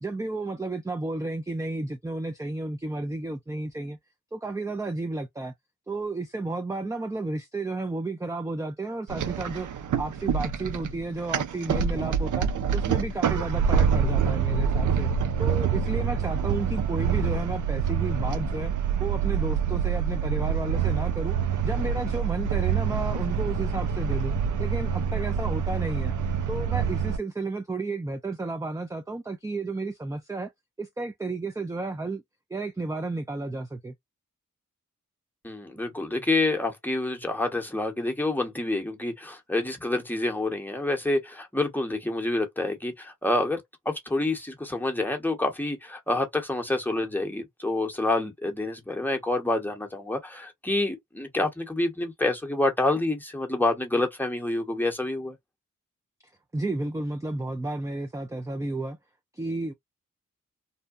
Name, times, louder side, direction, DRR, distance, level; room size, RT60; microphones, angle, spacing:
voice 1, 0.0-4.0 4.3-5.5 5.9-9.7 10.0-15.1 15.4-18.7 19.0-21.4 21.6-26.1 26.5-30.5 30.8-32.2 32.5-33.9 56.5-59.0 59.4-59.7, right 2 dB, 10° right, 0.4 m, -32 dB
sound 1, 9.1-27.2, right 7 dB, 70° right, 0.5 m, -26 dB
voice 2, 35.4-55.4, left 2 dB, 5° left, 1.0 m, -28 dB
2.7 x 2.1 x 2.4 m
cardioid pair, 50°, 31 cm